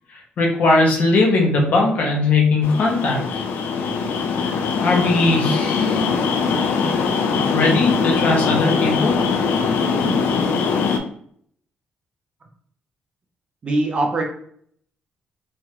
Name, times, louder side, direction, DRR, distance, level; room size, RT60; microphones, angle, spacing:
voice 1, 0.4-3.4 4.4-6.0 7.5-9.2, left 2 dB, 50° left, 0 dB, 0.7 m, -19 dB
sound 1, 2.6-11.0, left 5 dB, 75° left, 0.4 m, -21 dB
voice 2, 13.6-14.2, right 2 dB, 30° right, 2 dB, 0.4 m, -21 dB
3.0 x 2.3 x 2.8 m, 0.62 s
cardioid pair, 180°, 4 cm